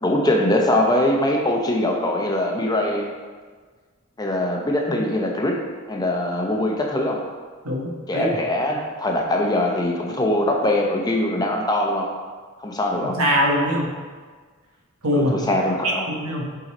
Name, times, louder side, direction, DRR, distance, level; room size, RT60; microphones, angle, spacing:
voice 1, 0.0-3.1 4.2-7.3 8.1-12.1 12.6-13.2 15.1-16.1, left 1 dB, 20° left, 1 dB, 0.7 m, -22 dB
voice 2, 7.6-8.3 13.0-13.9 15.0-15.4 15.8-16.5, equal, 90° right, -1 dB, 1.4 m, -22 dB
8.0 x 3.9 x 4.2 m, 1.5 s
head